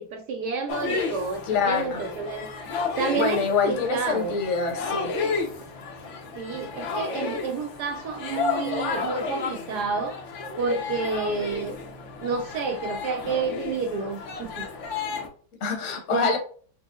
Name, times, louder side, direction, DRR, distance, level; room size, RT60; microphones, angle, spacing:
voice 1, 0.0-4.4 6.4-10.2 10.6-11.8 12.2-14.7 16.1-16.4, right 4 dB, 80° right, 5 dB, 0.9 m, -30 dB
sound 1, 0.7-15.3, left 4 dB, 75° left, 0.6 m, -32 dB
voice 2, 1.5-2.0 3.1-5.1 15.6-16.4, left 6 dB, 55° left, 2 dB, 1.0 m, -25 dB
5.1 x 2.0 x 3.5 m, 0.44 s
omnidirectional pair, 2.2 m